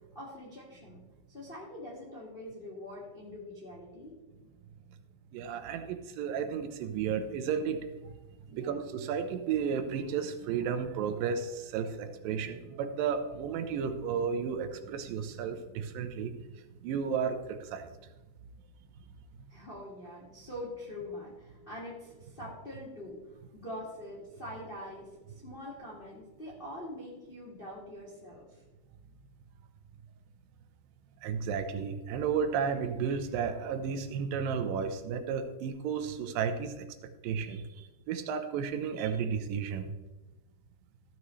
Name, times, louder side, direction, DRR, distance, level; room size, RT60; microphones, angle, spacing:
voice 1, 0.1-1.0 1.3-4.1 8.5-8.7 19.5-23.2 23.5-25.1 25.4-28.5, left 1 dB, 25° left, -5 dB, 1.1 m, -44 dB
voice 2, 5.3-7.8 8.5-16.3 16.8-17.9 31.2-36.9 37.2-39.9, right 7 dB, 75° right, 7 dB, 2.3 m, -33 dB
15.5 x 6.1 x 3.2 m, 1.1 s
omnidirectional pair, 4.4 m